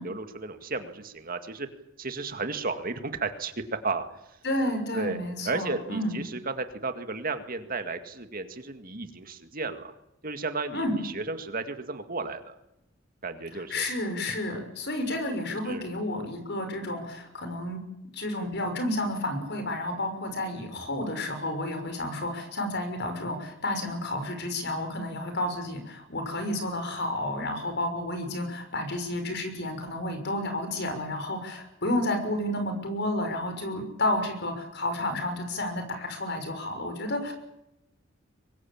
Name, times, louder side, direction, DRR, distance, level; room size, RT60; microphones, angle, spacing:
voice 1, 0.0-1.7 2.0-4.4 4.9-5.2 5.4-9.9 10.2-12.6 13.2-13.9 15.7-15.8, right 3 dB, 45° right, 8 dB, 2.1 m, -33 dB
voice 2, 4.4-6.2 10.7-10.9 13.5-17.8 18.1-37.3, left 1 dB, 60° left, 7 dB, 6.2 m, -31 dB
24.0 x 21.0 x 8.8 m, 0.85 s
head